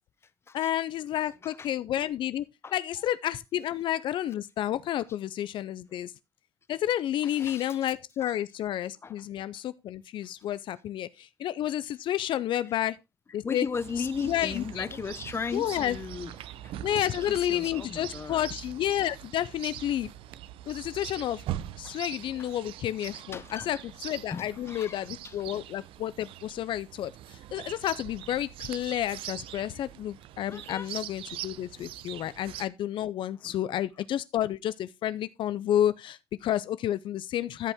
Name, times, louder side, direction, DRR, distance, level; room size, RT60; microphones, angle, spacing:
voice 1, 0.5-2.4 2.7-6.1 6.7-13.0 13.3-13.7 14.2-14.9 15.5-16.0 16.8-20.1 20.7-21.4 21.8-37.7, left 12 dB, 65° left, 0.4 m, -30 dB
voice 2, 1.2-1.7 2.6-2.7 7.2-7.8 8.2-8.3 9.0-9.2 13.4-16.3 16.6-18.5 21.8-22.0 22.4-22.5 23.0-23.8 24.3-25.4 30.5-30.9 33.4-33.6, left 5 dB, 30° left, 0.7 m, -37 dB
Chirp tweet, 13.7-32.7, right 13 dB, 80° right, 0.6 m, -42 dB
14.5 x 5.4 x 3.5 m
cardioid pair, 105°, 9 cm